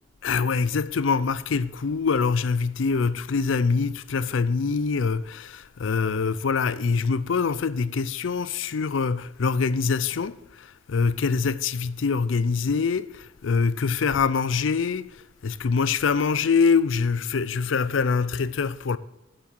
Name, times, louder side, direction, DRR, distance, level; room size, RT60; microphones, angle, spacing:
voice 1, 0.2-19.0, left 5 dB, 80° left, 0.5 m, -24 dB
7.5 x 7.4 x 8.0 m
head